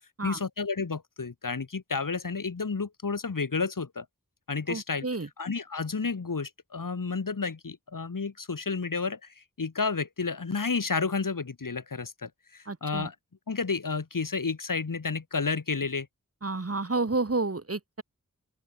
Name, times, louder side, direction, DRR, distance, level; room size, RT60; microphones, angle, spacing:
voice 1, 0.2-4.1 4.5-5.1 5.4-13.2 13.5-16.1, left 4 dB, 70° left, 1.8 m, -31 dB
voice 2, 4.7-5.3 12.7-13.1 16.4-18.0, right 3 dB, 45° right, 1.9 m, -30 dB
open air
wide cardioid pair, 50°, 33 cm